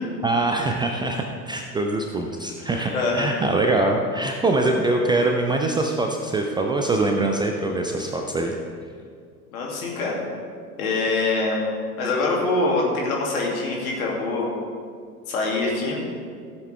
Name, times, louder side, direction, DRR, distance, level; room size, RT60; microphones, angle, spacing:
voice 1, 0.2-8.5, right 2 dB, 10° right, 2 dB, 0.5 m, -23 dB
voice 2, 2.6-3.4 9.5-10.1 10.8-11.6 12.0-14.5 15.3-16.0, left 3 dB, 65° left, -2 dB, 2.6 m, -24 dB
15.0 x 8.1 x 3.4 m, 2.2 s
figure-of-eight pair, 80°, 46 cm